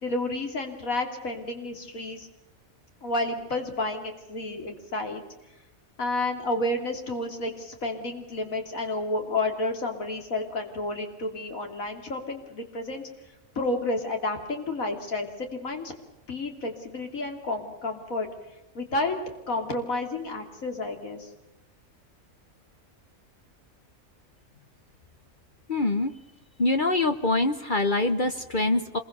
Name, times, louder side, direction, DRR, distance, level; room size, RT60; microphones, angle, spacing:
voice 1, 0.0-2.3 3.0-5.2 6.0-13.1 13.6-15.9 16.3-18.3 18.8-19.2 19.5-21.3, left 2 dB, 75° left, 4 dB, 3.4 m, -30 dB
voice 2, 25.7-26.1 26.6-29.0, left 2 dB, 40° left, 9 dB, 1.1 m, -24 dB
26.5 x 22.5 x 6.8 m, 0.93 s
omnidirectional pair, 1.5 m